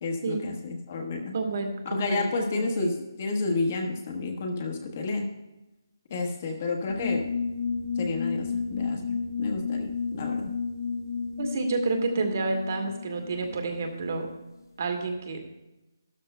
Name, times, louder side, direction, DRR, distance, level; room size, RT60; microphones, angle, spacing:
voice 1, 0.0-1.3 1.8-5.3 6.1-7.4 8.0-10.5, left 3 dB, 30° left, 2 dB, 1.2 m, -30 dB
voice 2, 1.3-2.9 11.4-14.3 14.8-15.6, right 3 dB, 40° right, 4 dB, 1.6 m, -30 dB
sound 1, 6.9-14.4, left 5 dB, 85° left, 1.5 m, -32 dB
13.5 x 12.5 x 2.2 m, 1.0 s
hypercardioid pair, 170°, 2 cm